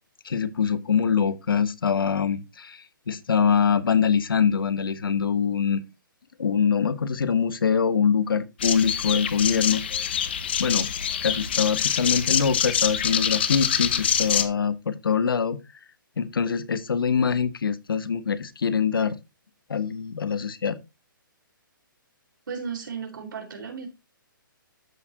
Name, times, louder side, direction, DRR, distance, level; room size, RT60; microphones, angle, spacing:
voice 1, 0.2-5.8 6.4-9.8 10.6-10.9 11.2-15.6 16.2-19.2 19.7-20.8, left 6 dB, 85° left, 1.2 m, -24 dB
sound 1, 8.6-14.4, left 8 dB, 30° left, 0.7 m, -25 dB
voice 2, 22.5-23.9, right 6 dB, 65° right, 3.9 m, -34 dB
13.0 x 4.5 x 2.9 m
hypercardioid pair, 180°, 11 cm